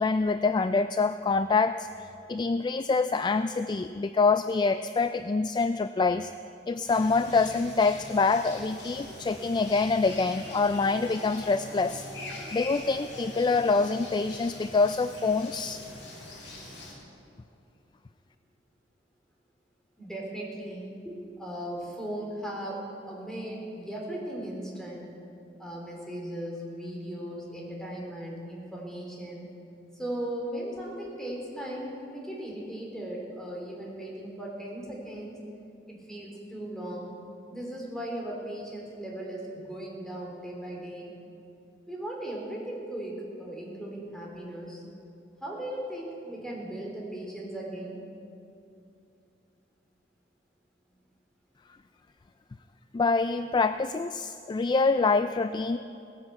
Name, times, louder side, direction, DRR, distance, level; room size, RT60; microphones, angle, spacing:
voice 1, 0.0-1.9 2.3-6.3 6.7-12.0 12.5-15.8 52.9-55.8, left 4 dB, 25° left, 11 dB, 0.3 m, -25 dB
sound 1, 6.9-16.9, left 1 dB, 80° left, 4.2 m, -42 dB
voice 2, 20.0-25.1 25.6-29.5 30.0-35.4 35.9-37.2 37.5-41.1 41.9-44.8 45.4-48.0, right 1 dB, 5° left, -2 dB, 3.4 m, -37 dB
17.5 x 10.5 x 7.9 m, 2.6 s
head